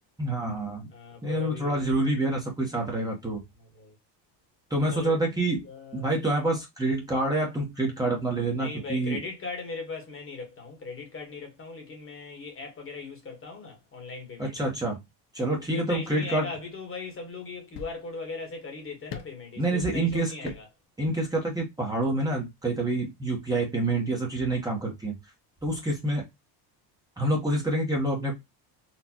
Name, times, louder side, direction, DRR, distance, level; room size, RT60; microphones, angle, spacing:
voice 1, 0.2-0.9 1.2-3.4 4.7-5.6 5.9-9.2 14.4-15.0 15.3-16.5 19.6-20.3 21.0-25.1 25.6-26.2 27.2-28.3, right 2 dB, 10° right, 1.1 m, -27 dB
voice 2, 0.9-2.1 2.7-2.9 3.6-4.0 4.9-5.2 5.5-6.1 8.6-14.6 15.6-20.7, left 4 dB, 30° left, 1.4 m, -39 dB
sound 1, 17.7-18.3 19.1-19.5 20.4-20.7 21.0-21.1, left 7 dB, 50° left, 0.7 m, -41 dB
4.3 x 2.5 x 2.9 m
cardioid pair, 130°, 44 cm